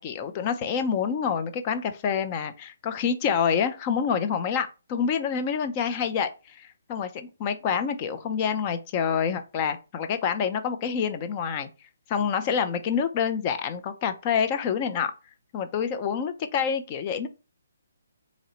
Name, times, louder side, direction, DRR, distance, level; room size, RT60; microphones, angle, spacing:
voice 1, 0.0-11.7 12.1-15.1 15.5-17.3, left 7 dB, 30° left, 0.5 m, -27 dB
2.9 x 2.6 x 4.3 m
hypercardioid pair, 150°, 0 cm